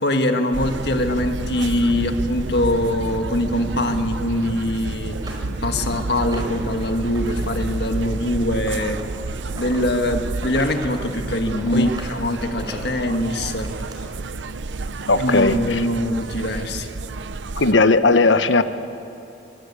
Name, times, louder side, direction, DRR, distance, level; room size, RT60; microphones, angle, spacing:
voice 1, 0.0-9.0 9.5-13.7 15.2-16.9, left 1 dB, 60° left, 6 dB, 1.8 m, -23 dB
sound 1, 0.5-17.7, right 3 dB, 80° right, 0.7 m, -30 dB
sound 2, 5.1-6.7 7.1-7.5 7.7-9.8 10.3-11.0 11.3-12.1 12.5-14.0 14.9-15.0 15.5-15.6, right 1 dB, 20° right, 4.6 m, -40 dB
voice 2, 15.1-15.9 17.6-18.6, left 3 dB, 90° left, 10 dB, 1.1 m, -17 dB
25.5 x 19.5 x 8.4 m, 2.6 s
head